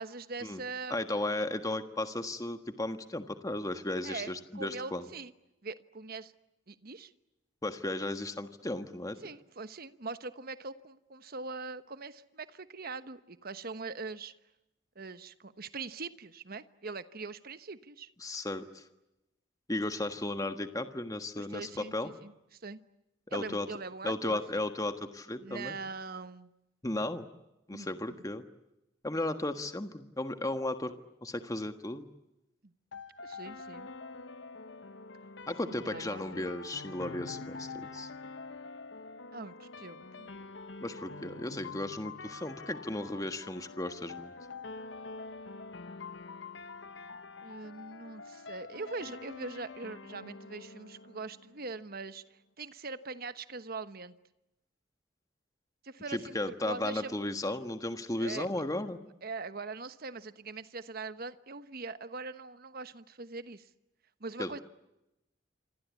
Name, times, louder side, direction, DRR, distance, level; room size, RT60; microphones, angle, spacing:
voice 1, 0.0-1.0 4.0-5.3 5.6-6.3 6.7-7.1 9.2-14.3 14.9-18.1 21.4-22.3 22.6-22.8 23.3-24.6 25.4-26.5 27.7-28.2 32.6-32.7 33.2-33.9 35.6-36.5 39.3-40.3 47.4-52.2 52.6-54.2 55.8-57.2 58.2-58.5 59.2-63.7 64.2-64.6, right 3 dB, 55° right, 12 dB, 1.2 m, -42 dB
voice 2, 0.9-5.1 7.6-9.2 18.2-18.8 19.7-22.1 23.3-23.7 24.0-25.7 26.8-27.3 27.7-28.4 29.0-30.9 31.2-32.1 35.5-38.1 40.8-44.3 56.1-59.0 64.4-64.5, left 1 dB, 20° left, 8 dB, 1.4 m, -35 dB
sound 1, 32.9-51.9, left 3 dB, 75° left, 1.1 m, -46 dB
26.5 x 26.5 x 8.4 m, 0.93 s
head